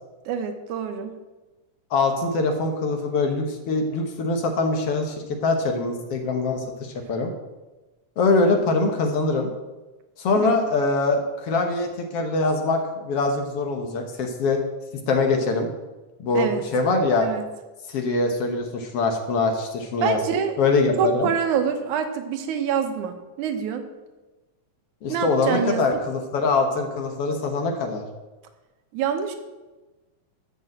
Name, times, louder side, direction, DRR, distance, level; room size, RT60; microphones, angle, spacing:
voice 1, 0.3-1.2 10.4-10.5 16.3-16.6 17.2-17.5 20.0-20.6 21.0-23.8 25.1-25.9 28.9-29.4, right 7 dB, 85° right, 7 dB, 2.4 m, -26 dB
voice 2, 1.9-5.2 5.4-7.3 8.2-9.5 10.2-14.6 15.1-15.7 16.2-17.3 17.9-20.2 20.6-21.3 25.0-28.1, left 3 dB, 60° left, 3 dB, 1.9 m, -23 dB
12.0 x 5.6 x 7.7 m, 1.2 s
omnidirectional pair, 3.4 m